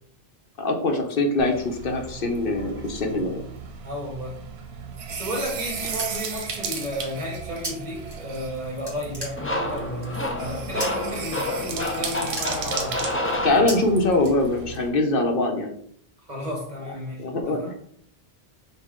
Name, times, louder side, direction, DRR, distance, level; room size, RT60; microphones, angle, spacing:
voice 1, 0.6-3.4 13.4-15.8 17.2-17.7, left 2 dB, 65° left, 3 dB, 0.8 m, -23 dB
sound 1, 1.4-14.9, right 6 dB, 85° right, 0.9 m, -35 dB
voice 2, 3.8-4.4 5.1-13.0 16.3-17.2 17.6-17.7, left 1 dB, 45° right, 0 dB, 1.1 m, -33 dB
sound 2, 5.4-6.5 7.6-7.7 8.1-8.6 8.9-9.8 10.8-11.2 11.5-11.7 11.9-13.1 13.7-13.8 14.2-14.9, right 1 dB, 25° right, 1.2 m, -36 dB
sound 3, 9.4-14.2, left 1 dB, 20° left, 0.3 m, -29 dB
5.3 x 2.2 x 3.6 m, 0.64 s
omnidirectional pair, 1.0 m